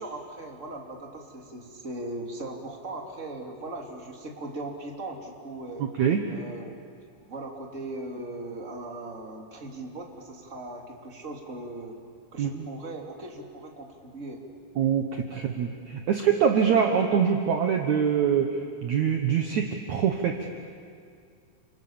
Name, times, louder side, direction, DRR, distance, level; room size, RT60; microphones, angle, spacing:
voice 1, 0.0-5.9 6.3-6.8 7.3-12.0 12.3-14.4 15.3-15.4, right 2 dB, 20° right, 1 dB, 2.3 m, -39 dB
voice 2, 5.8-6.2 12.4-12.7 14.8-20.4, right 7 dB, 70° right, 4 dB, 1.8 m, -24 dB
30.0 x 27.0 x 7.2 m, 2.2 s
omnidirectional pair, 5.2 m